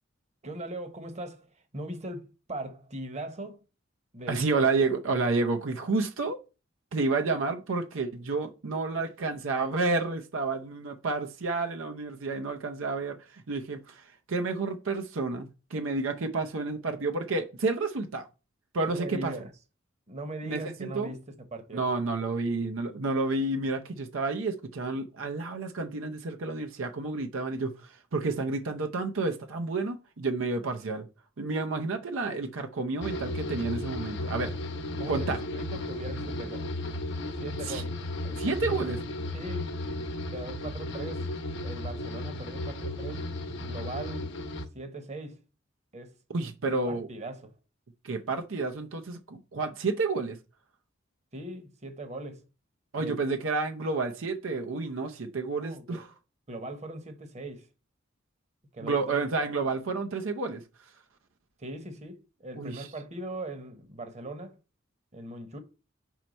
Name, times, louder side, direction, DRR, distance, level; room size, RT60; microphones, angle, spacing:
voice 1, 0.4-3.6 4.1-4.7 18.9-19.5 20.1-21.9 35.0-36.7 37.4-37.9 38.2-38.8 39.3-39.7 40.3-41.3 41.6-43.3 43.6-44.3 44.7-45.4 45.9-46.2 46.8-47.5 51.3-52.4 52.9-53.2 55.6-56.0 56.5-57.7 58.7-59.2 61.6-64.6 65.1-65.6, right 1 dB, 35° right, 1.0 m, -40 dB
voice 2, 4.3-6.4 6.9-18.3 18.7-19.3 20.5-21.1 21.7-31.1 31.4-34.5 35.1-35.4 37.7-37.8 38.4-39.0 46.3-47.1 48.0-50.4 52.9-56.1 58.8-60.6 62.5-62.9, right 3 dB, 80° right, 0.7 m, -30 dB
sound 1, 33.0-44.7, left 1 dB, 65° left, 0.9 m, -34 dB
4.6 x 4.4 x 5.2 m
head